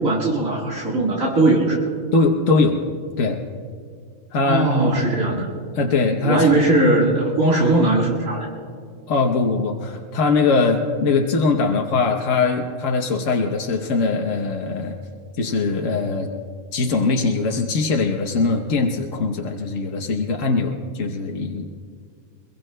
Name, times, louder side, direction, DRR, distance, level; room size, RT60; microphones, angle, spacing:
voice 1, 0.0-1.8 4.4-5.5 6.2-8.5, right 2 dB, 80° right, -4 dB, 2.2 m, -19 dB
voice 2, 2.1-2.8 3.2-3.4 4.3-4.9 5.8-6.6 9.1-15.0 15.4-16.3 16.7-21.7, left 3 dB, 70° left, 2 dB, 1.3 m, -21 dB
23.5 x 22.5 x 2.2 m, 2.1 s
omnidirectional pair, 1.4 m